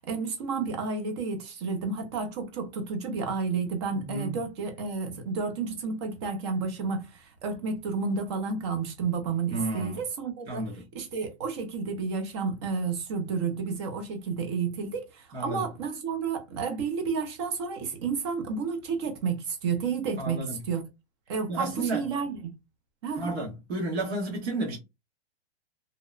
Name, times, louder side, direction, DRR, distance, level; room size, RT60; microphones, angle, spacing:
voice 1, 0.1-20.8 21.3-22.5 23.0-23.3, right 5 dB, 25° right, 0.4 m, -31 dB
voice 2, 3.9-4.4 9.5-10.0 10.5-10.9 15.3-15.6 20.2-20.6 21.5-22.1 23.1-24.8, right 2 dB, 65° right, 1.3 m, -32 dB
2.9 x 2.0 x 2.3 m
supercardioid pair, 165°, 34 cm